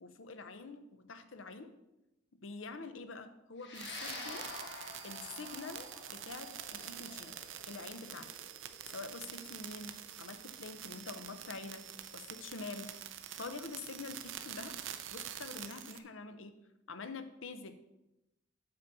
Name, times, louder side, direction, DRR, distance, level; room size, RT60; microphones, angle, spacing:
voice 1, 0.0-1.7 2.4-4.5 5.0-7.4 7.7-8.4 8.9-13.0 13.4-14.8 15.1-17.8, left 3 dB, 85° left, 9 dB, 0.8 m, -46 dB
sound 1, 3.6-12.1, left 3 dB, 60° left, 1.4 m, -50 dB
sound 2, 3.7-16.0, right 10 dB, 75° right, 0.6 m, -46 dB
7.9 x 4.2 x 6.8 m, 0.91 s
head